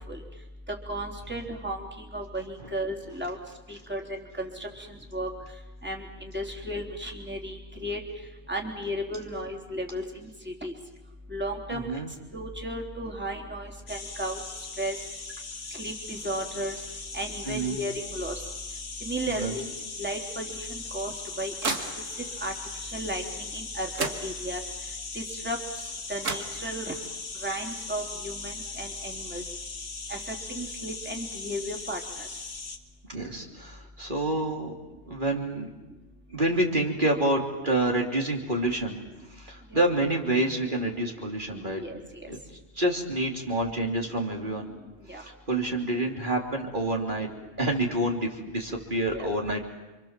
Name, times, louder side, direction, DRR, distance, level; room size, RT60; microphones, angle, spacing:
voice 1, 0.9-1.8 2.1-3.4 3.7-4.0 4.4-4.7 5.1-5.3 5.8-8.0 8.5-10.0 10.6-10.7 11.3-11.9 12.3-14.4 14.8-15.0 15.8-16.8 17.1-18.3 19.0-19.7 20.0-20.7 20.9-21.1 21.4-21.5 22.4-22.5 22.9-24.6 25.2-25.6 26.1-26.9 27.4-29.4 30.1-30.2 30.6-32.0 39.7-39.8 41.8-42.0 45.1-45.2 49.1-49.3, right 1 dB, 10° right, 0 dB, 3.7 m, -34 dB
voice 2, 11.7-12.1 17.5-17.8 19.3-19.5 33.1-34.7 35.1-35.7 36.3-39.0 39.3-41.8 42.3-42.4 42.7-44.7 45.1-47.3 47.6-49.6, right 1 dB, 40° right, 1 dB, 3.4 m, -28 dB
sound 1, 13.9-32.8, left 4 dB, 70° left, 2.4 m, -39 dB
sound 2, 20.8-22.4 23.6-23.7 23.9-24.8 25.9-26.0 26.2-27.1, right 3 dB, 80° right, 2.5 m, -35 dB
29.5 x 26.5 x 7.5 m, 1.1 s
omnidirectional pair, 1.3 m